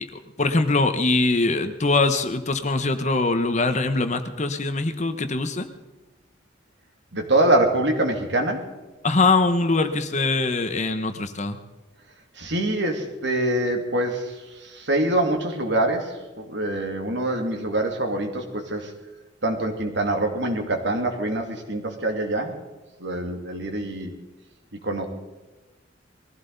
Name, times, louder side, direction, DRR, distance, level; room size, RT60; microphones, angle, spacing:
voice 1, 0.0-5.7 9.0-11.6, left 3 dB, 35° left, 8 dB, 1.0 m, -22 dB
voice 2, 7.1-8.7 12.3-18.9 19.4-22.5 23.0-24.1 24.8-25.1, right 1 dB, 60° right, 3 dB, 2.4 m, -25 dB
21.5 x 15.5 x 4.0 m, 1.1 s
head